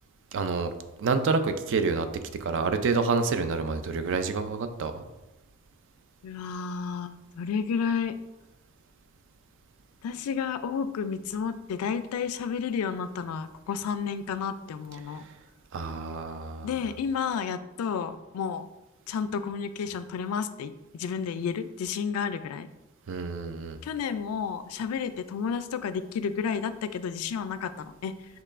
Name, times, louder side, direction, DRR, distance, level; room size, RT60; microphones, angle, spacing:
voice 1, 0.3-0.7 1.0-2.1 2.4-5.0 15.7-16.7 23.1-23.8, right 4 dB, 60° right, 9 dB, 0.4 m, -28 dB
voice 2, 6.2-8.1 10.0-15.2 16.6-18.7 19.1-22.7 23.8-28.1, left 6 dB, 85° left, 11 dB, 0.3 m, -31 dB
6.5 x 2.9 x 2.5 m, 1.0 s
head